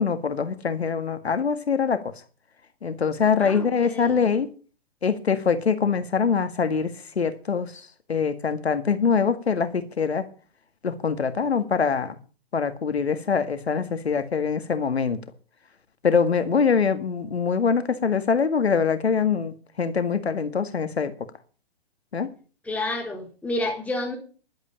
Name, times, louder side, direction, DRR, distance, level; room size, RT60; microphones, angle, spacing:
voice 1, 0.0-2.1 2.8-4.5 5.0-10.3 10.8-12.2 12.5-15.2 16.0-21.1 22.1-22.3, left 6 dB, 85° left, 1.9 m, -24 dB
voice 2, 3.4-4.2 22.7-24.2, left 2 dB, 5° left, 3.8 m, -30 dB
11.5 x 8.7 x 8.7 m
hypercardioid pair, 140°, 31 cm